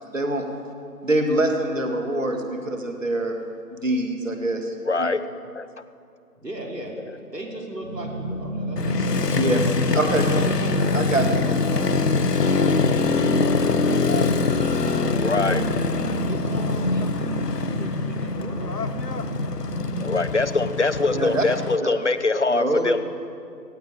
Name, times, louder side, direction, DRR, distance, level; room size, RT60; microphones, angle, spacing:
voice 1, 0.1-0.5 1.0-3.4 3.7-5.1 9.3-9.6 9.9-10.3 10.9-11.6 21.1-21.5 21.8-21.9 22.5-22.9, right 1 dB, 50° right, 4 dB, 2.2 m, -24 dB
voice 2, 4.9-5.2 5.5-5.7 13.4-14.2 15.2-15.6 20.0-23.0, left 3 dB, 45° left, 12 dB, 0.7 m, -24 dB
voice 3, 6.4-6.9 7.3-11.3 11.7-12.8 14.0-14.3 14.7-15.7 16.3-19.0, right 1 dB, 85° right, -1 dB, 3.9 m, -39 dB
sound 1, 7.8-20.0, right 1 dB, 30° right, 3.4 m, -30 dB
Motorcycle, 8.8-21.8, left 4 dB, 75° left, 1.0 m, -24 dB
17.5 x 16.5 x 5.0 m, 2.4 s
figure-of-eight pair, 165°, 48 cm